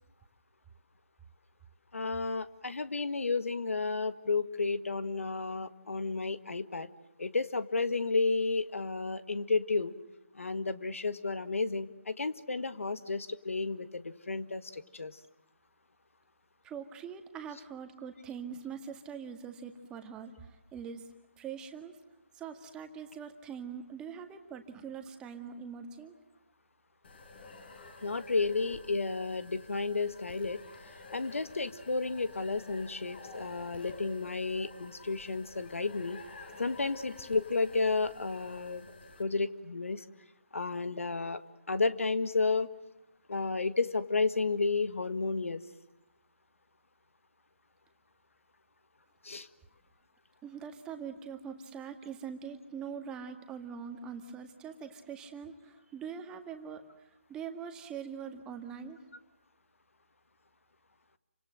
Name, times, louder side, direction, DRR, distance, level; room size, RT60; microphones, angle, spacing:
voice 1, 1.9-6.9 7.2-9.9 10.3-15.2 28.0-30.6 31.1-36.2 36.6-38.9 39.2-40.0 40.5-41.4 41.7-42.7 43.3-45.6 49.2-49.5, left 3 dB, 75° left, 13 dB, 1.8 m, -32 dB
voice 2, 16.6-21.1 21.4-21.9 22.3-26.1 50.4-56.8 57.3-59.0, right 7 dB, 10° right, 6 dB, 1.9 m, -43 dB
sound 1, 27.0-39.2, left 3 dB, 50° left, 5.1 m, -50 dB
29.0 x 26.0 x 7.7 m, 0.90 s
figure-of-eight pair, 155°, 7 cm